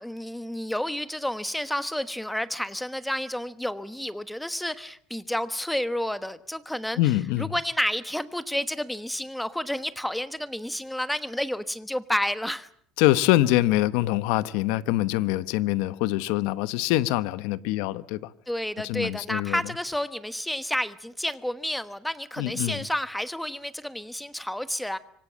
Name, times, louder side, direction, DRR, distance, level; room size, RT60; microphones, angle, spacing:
voice 1, 0.0-7.0 7.4-12.7 18.5-25.0, left 1 dB, 5° left, 1.2 m, -30 dB
voice 2, 7.0-7.5 13.0-18.3 18.8-19.6 22.4-22.9, left 16 dB, 80° left, 1.1 m, -24 dB
26.0 x 24.5 x 7.5 m
cardioid pair, 155°, 0 cm